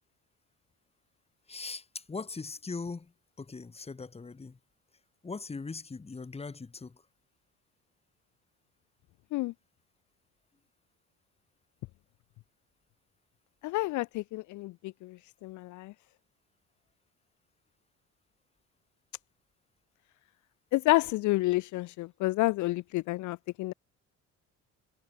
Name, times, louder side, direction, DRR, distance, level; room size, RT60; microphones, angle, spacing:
voice 1, 1.5-3.1 3.4-4.6 5.2-7.0, left 4 dB, 20° left, 1.3 m, -40 dB
voice 2, 13.6-15.9 20.7-23.7, left 19 dB, 60° left, 0.5 m, -29 dB
supercardioid pair, 90°, 33 cm